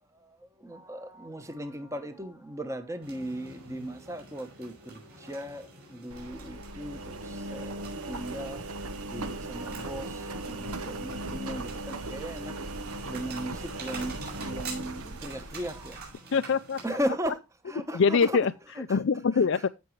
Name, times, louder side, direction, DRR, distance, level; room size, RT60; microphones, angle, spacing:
voice 1, 0.6-8.7 9.1-12.5 13.0-16.0 16.8-17.4 17.7-18.4 18.8-19.0 19.4-19.5, equal, 15° right, 1.0 m, -37 dB
sound 1, 3.0-17.0, right 3 dB, 45° right, 5.4 m, -47 dB
Engine, 6.1-16.1, right 2 dB, 85° right, 1.1 m, -38 dB
voice 2, 16.3-16.8 17.9-18.5 18.8-19.7, left 5 dB, 55° left, 0.4 m, -24 dB
15.0 x 6.0 x 3.1 m
head